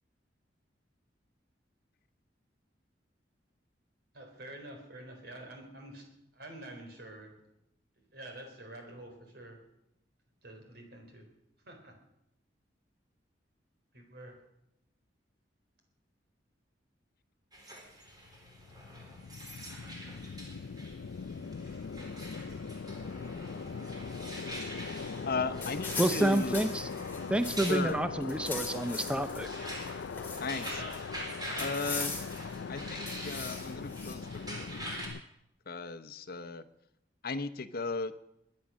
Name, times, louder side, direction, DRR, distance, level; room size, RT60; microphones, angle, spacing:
voice 1, 4.1-6.1 6.4-7.3 8.1-9.6 10.4-11.2 11.6-11.9 13.9-14.3, right 1 dB, 60° right, 3 dB, 4.1 m, -47 dB
sound 1, 17.5-35.1, right 1 dB, 20° right, 4.0 m, -45 dB
sound 2, 18.1-35.2, left 5 dB, 85° left, 0.5 m, -41 dB
voice 2, 25.2-26.7 27.6-28.0 30.4-30.8 31.6-32.2 32.7-34.9 35.7-36.6 37.2-38.2, left 3 dB, 55° left, 8 dB, 0.8 m, -36 dB
sound 3, 25.6-27.9 28.2-29.4 29.8-31.0 31.6-32.5 33.1-34.1, left 4 dB, 10° left, 3.2 m, -40 dB
voice 3, 26.0-26.9 27.3-29.5, right 1 dB, 5° right, 10 dB, 0.5 m, -29 dB
22.5 x 9.6 x 6.2 m, 0.83 s
head